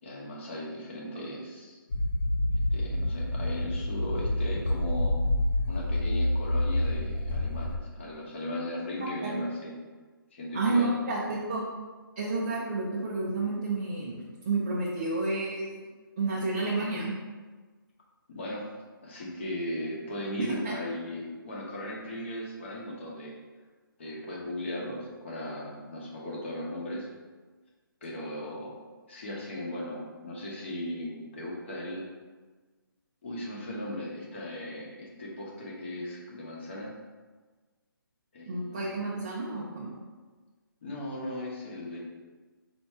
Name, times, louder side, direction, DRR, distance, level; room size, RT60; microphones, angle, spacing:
voice 1, 0.0-1.8 2.7-5.1 5.7-9.7 10.3-11.0 18.3-18.7 19.0-23.3 24.0-27.1 28.0-28.8 29.1-32.0 33.2-36.9 38.3-39.0 40.8-42.0, left 1 dB, 30° left, -3 dB, 1.0 m, -37 dB
sound 1, 1.9-7.8, left 1 dB, 60° left, 0.6 m, -28 dB
voice 2, 10.5-11.7 12.2-14.1 14.4-15.7 16.2-17.1 20.4-20.7 38.5-40.0, right 3 dB, 25° right, -5 dB, 0.5 m, -30 dB
4.3 x 2.7 x 4.5 m, 1.3 s
hypercardioid pair, 170°, 12 cm